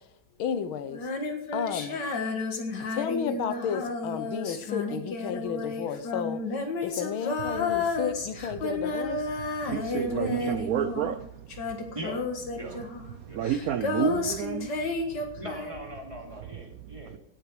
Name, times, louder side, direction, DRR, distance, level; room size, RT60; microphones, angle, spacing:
voice 1, 0.4-1.0 1.5-2.0 2.9-6.4 6.8-9.3 10.1-10.4, left 8 dB, 90° left, 1.8 m, -32 dB
Female singing, 0.9-11.2 11.5-16.0, left 3 dB, 60° left, 2.2 m, -32 dB
voice 2, 9.6-11.3 12.7-12.8 13.3-14.7, right 10 dB, 80° right, 0.8 m, -30 dB
voice 3, 15.4-17.2, equal, 15° right, 2.6 m, -40 dB
17.5 x 8.3 x 4.8 m
omnidirectional pair, 2.2 m